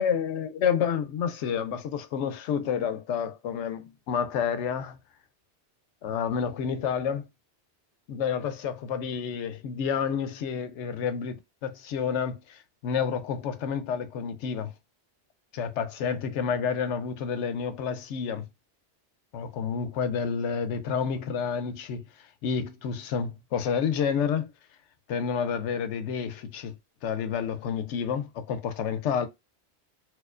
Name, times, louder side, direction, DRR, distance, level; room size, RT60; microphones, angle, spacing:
voice 1, 0.0-5.0 6.0-7.3 8.1-14.7 15.5-18.5 19.3-22.0 22.4-24.5 25.1-26.7 27.0-29.3, left 7 dB, 90° left, 0.9 m, -29 dB
4.3 x 2.3 x 2.4 m
omnidirectional pair, 1.2 m